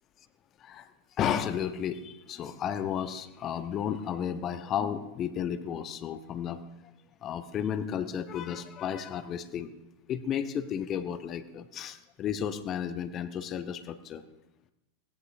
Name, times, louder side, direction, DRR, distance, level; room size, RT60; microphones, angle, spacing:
voice 1, 1.2-6.9 7.2-9.7 10.1-14.2, left 8 dB, 30° left, 10 dB, 1.0 m, -33 dB
23.0 x 18.0 x 2.7 m, 0.95 s
figure-of-eight pair, 90°, 0 cm